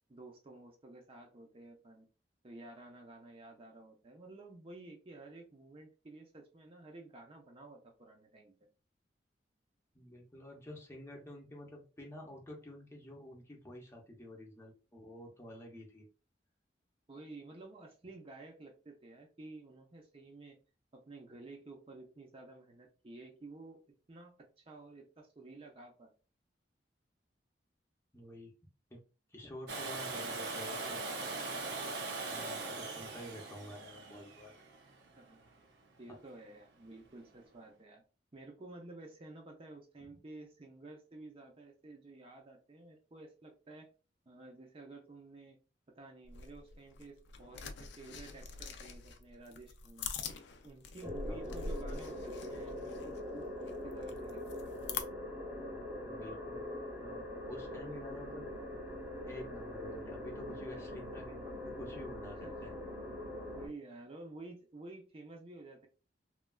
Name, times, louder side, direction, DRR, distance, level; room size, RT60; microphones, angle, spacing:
voice 1, 0.1-2.1 2.4-8.5 17.1-20.6 20.9-23.8 24.1-26.1 35.2-35.4 36.0-38.0 38.3-43.9 44.3-45.6 45.9-50.1 50.6-54.7 62.3-62.7 63.5-65.9, right 2 dB, 35° right, 1 dB, 0.5 m, -52 dB
voice 2, 9.9-16.1 28.1-28.5 28.9-29.0 29.3-31.9 32.2-34.5 36.1-36.2 51.3-51.6 56.0-56.7 57.0-58.5 59.3-62.8, left 1 dB, 15° left, -1 dB, 0.7 m, -49 dB
Domestic sounds home sounds, 29.7-35.5 37.4-37.5, right 3 dB, 75° right, 0.6 m, -41 dB
sound 1, 46.2-55.0, left 5 dB, 75° left, 0.4 m, -44 dB
sound 2, 51.0-63.7, left 1 dB, 10° right, 0.9 m, -43 dB
3.1 x 2.3 x 2.2 m, 0.33 s
head